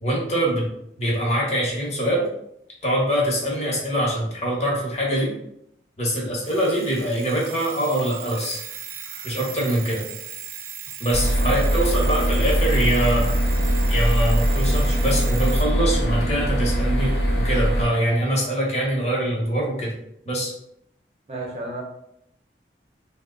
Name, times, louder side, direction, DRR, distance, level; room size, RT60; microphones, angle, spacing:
voice 1, 0.0-0.7 1.0-2.2 2.8-5.3 6.0-8.6 9.2-10.0 11.0-13.3 13.9-19.9 20.2-20.5, right 1 dB, 40° left, -3 dB, 1.0 m, -24 dB
Alarm, 6.4-15.7, right 8 dB, 55° right, 0.3 m, -38 dB
sound 1, 11.1-17.8, equal, 70° left, 0.9 m, -21 dB
voice 2, 11.3-12.2 21.3-21.8, right 1 dB, 35° right, -1 dB, 0.8 m, -34 dB
3.0 x 2.1 x 3.7 m, 0.77 s
head